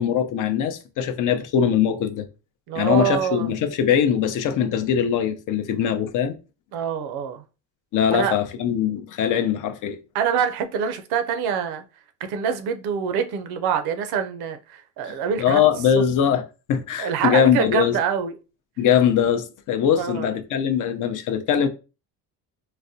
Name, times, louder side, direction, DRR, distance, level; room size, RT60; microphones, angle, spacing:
voice 1, 0.0-2.2 2.7-6.3 7.9-10.0 15.4-16.4 16.7-18.0 18.8-21.7, left 8 dB, 55° left, 0.5 m, -21 dB
voice 2, 2.7-3.5 5.7-5.8 6.7-7.4 8.1-8.3 10.1-11.8 12.3-15.6 17.0-18.4 20.0-20.3, right 7 dB, 80° right, 0.6 m, -25 dB
3.9 x 2.1 x 2.6 m
cardioid pair, 130°, 38 cm